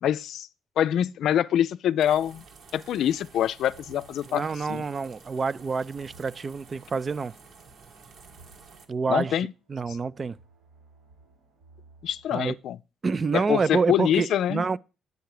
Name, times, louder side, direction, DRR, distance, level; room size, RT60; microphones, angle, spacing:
voice 1, 0.0-0.5 0.8-2.4 2.7-4.4 4.7-4.8 9.1-9.5 12.0-12.8 13.3-14.7, left 10 dB, 75° left, 0.4 m, -25 dB
sound 1, 2.0-8.9, right 5 dB, 65° right, 1.7 m, -51 dB
sound 2, 3.1-12.6, right 3 dB, 85° right, 5.2 m, -59 dB
voice 2, 4.3-7.3 8.9-10.4 12.3-12.6 13.0-14.8, right 4 dB, 35° right, 0.4 m, -28 dB
10.0 x 8.3 x 4.8 m
cardioid pair, 90°, 0 cm